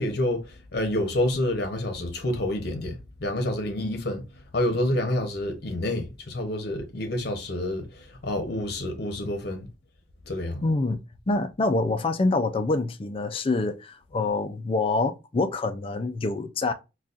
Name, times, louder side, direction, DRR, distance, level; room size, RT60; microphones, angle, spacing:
voice 1, 0.0-4.2 4.5-9.7 10.2-10.6, left 1 dB, 60° left, 0.8 m, -28 dB
voice 2, 10.6-16.7, left 3 dB, 30° left, 0.4 m, -26 dB
3.9 x 2.3 x 2.4 m
head